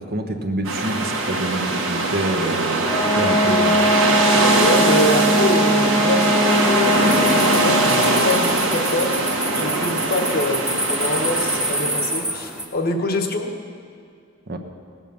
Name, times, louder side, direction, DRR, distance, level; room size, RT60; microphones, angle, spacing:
voice 1, 0.0-3.9 14.5-14.6, right 1 dB, 50° right, 4 dB, 1.1 m, -27 dB
sound 1, 0.6-12.2, right 2 dB, 65° right, 1.7 m, -21 dB
Wind instrument woodwind instrument, 2.9-8.6, equal, 15° left, 0.9 m, -21 dB
voice 2, 4.6-7.0 7.4-9.2 9.5-13.5, left 2 dB, 45° left, 4 dB, 1.1 m, -25 dB
sound 2, 7.1-12.6, right 1 dB, 5° right, 1.1 m, -28 dB
17.5 x 7.2 x 7.0 m, 2.4 s
head